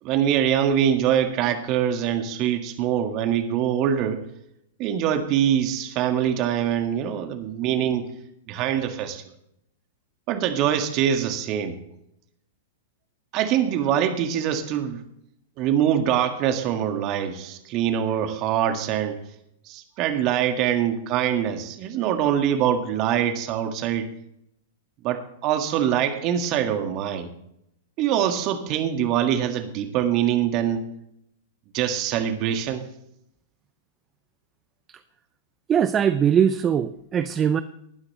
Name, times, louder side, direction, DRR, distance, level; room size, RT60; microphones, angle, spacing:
voice 1, 0.0-4.2 4.8-8.1 8.5-9.3 10.3-11.8 13.3-15.0 15.6-19.2 19.7-24.1 25.0-27.3 28.0-30.9 31.7-32.9, right 9 dB, 40° right, 7 dB, 1.8 m, -24 dB
voice 2, 35.7-37.6, right 8 dB, 25° right, 12 dB, 0.6 m, -21 dB
19.5 x 9.9 x 3.2 m, 0.77 s
figure-of-eight pair, 100°, 0 cm